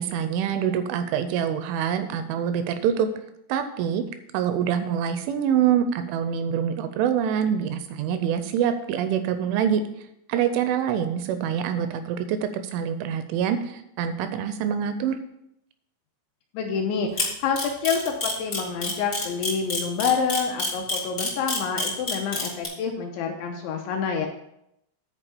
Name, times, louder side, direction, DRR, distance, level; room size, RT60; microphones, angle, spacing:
voice 1, 0.0-3.1 3.5-4.0 4.3-9.8 10.3-15.2, right 8 dB, 85° right, 9 dB, 2.8 m, -25 dB
voice 2, 16.5-24.3, left 6 dB, 80° left, 2 dB, 2.7 m, -27 dB
Camera, 17.2-22.6, left 2 dB, 60° left, 0.7 m, -27 dB
10.0 x 4.5 x 6.8 m, 0.80 s
omnidirectional pair, 6.0 m